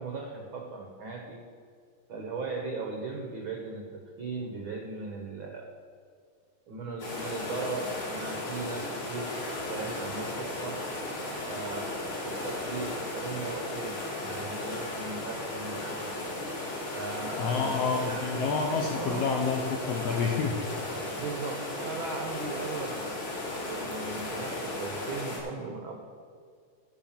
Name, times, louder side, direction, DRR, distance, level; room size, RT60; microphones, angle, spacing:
voice 1, 0.0-1.4 2.1-5.7 6.7-10.8 11.5-16.1 16.9-18.5 19.0-19.3 21.1-26.0, right 3 dB, 80° right, 2 dB, 1.1 m, -38 dB
sound 1, 7.0-25.4, left 2 dB, 50° left, 3.9 m, -35 dB
voice 2, 17.4-20.6, left 5 dB, 75° left, 1 dB, 1.5 m, -29 dB
13.0 x 5.0 x 7.3 m, 2.1 s
omnidirectional pair, 3.8 m